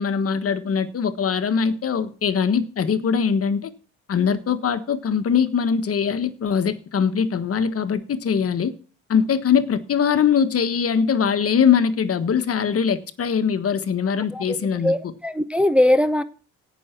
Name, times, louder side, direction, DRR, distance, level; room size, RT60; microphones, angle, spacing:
voice 1, 0.0-3.7 4.1-8.7 9.1-14.9, left 7 dB, 50° left, 11 dB, 1.4 m, -22 dB
voice 2, 14.8-16.2, left 1 dB, 5° right, 10 dB, 0.7 m, -20 dB
17.0 x 6.3 x 5.9 m, 0.39 s
cardioid pair, 90°, 30 cm